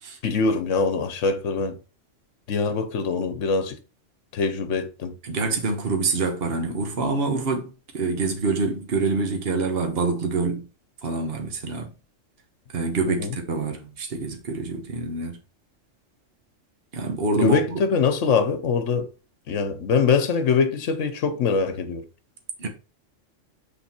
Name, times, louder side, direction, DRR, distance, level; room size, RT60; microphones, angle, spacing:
voice 1, 0.2-1.8 2.5-3.8 4.3-5.1 13.1-13.4 17.3-19.1 19.5-22.0, left 5 dB, 75° left, 1.2 m, -23 dB
voice 2, 5.2-10.6 11.0-11.9 12.7-15.4 16.9-17.8 22.6-22.7, right 3 dB, 50° right, 1.4 m, -26 dB
5.8 x 4.2 x 4.3 m
omnidirectional pair, 1.3 m